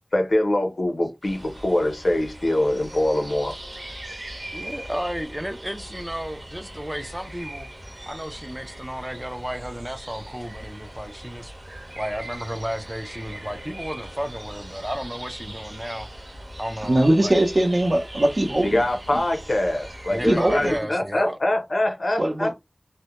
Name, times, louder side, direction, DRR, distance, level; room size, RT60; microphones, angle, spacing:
voice 1, 0.1-3.6 18.6-22.5, left 1 dB, 75° left, 0.6 m, -23 dB
sound 1, 1.2-20.8, right 1 dB, 75° right, 0.9 m, -40 dB
voice 2, 4.5-7.7 8.1-16.1 16.6-17.3 20.1-21.4, equal, 10° right, 0.4 m, -33 dB
voice 3, 16.8-18.8 19.1-19.2 20.2-20.7 22.2-22.5, right 1 dB, 55° right, 0.6 m, -21 dB
2.1 x 2.1 x 2.9 m
wide cardioid pair, 55°, 0 cm